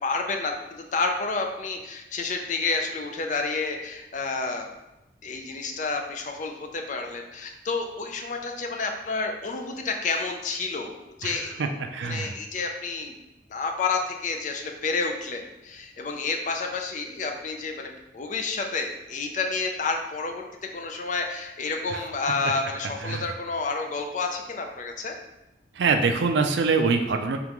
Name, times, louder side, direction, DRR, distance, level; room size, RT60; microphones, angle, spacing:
voice 1, 0.0-4.7 5.2-11.6 12.0-13.1 13.5-20.4 20.7-25.1, left 4 dB, 45° left, 3 dB, 0.5 m, -30 dB
voice 2, 11.2-12.3 21.9-22.0 23.0-23.2 25.8-27.4, right 4 dB, 80° right, 6 dB, 0.4 m, -24 dB
3.6 x 3.6 x 3.0 m, 0.94 s
head